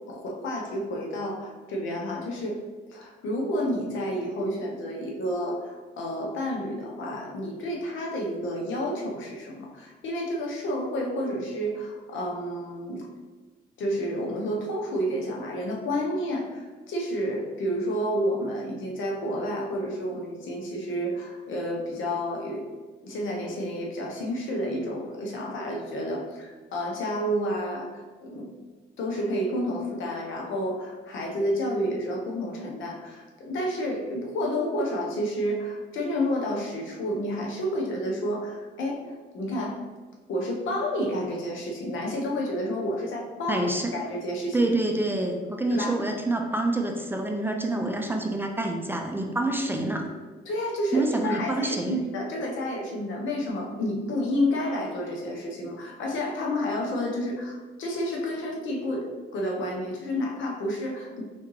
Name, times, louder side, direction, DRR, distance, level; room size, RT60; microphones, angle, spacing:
voice 1, 0.1-2.6 2.9-13.1 13.8-22.7 23.0-28.5 29.0-39.8 40.3-44.6 45.7-46.0 50.5-61.2, equal, 80° left, 0 dB, 0.9 m, -30 dB
voice 2, 43.5-43.9 44.5-50.1 50.9-52.0, right 2 dB, 10° right, 2 dB, 0.5 m, -27 dB
4.3 x 3.6 x 3.1 m, 1.4 s
cardioid pair, 90°, 20 cm